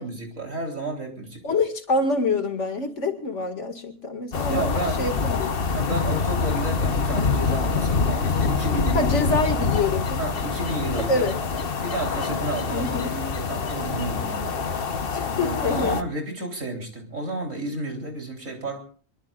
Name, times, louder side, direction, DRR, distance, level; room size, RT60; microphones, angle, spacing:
voice 1, 0.0-1.6 4.5-5.1 5.7-9.1 9.5-9.6 10.2-11.3 11.8-14.6 15.4-18.8, right 2 dB, 80° right, 4.2 m, -32 dB
voice 2, 1.4-5.7 8.9-10.2 11.0-11.4 12.7-13.1 15.1-16.0, left 3 dB, 65° left, 2.5 m, -26 dB
sound 1, 4.3-16.0, left 5 dB, 50° left, 1.2 m, -25 dB
26.0 x 21.5 x 2.5 m
omnidirectional pair, 1.3 m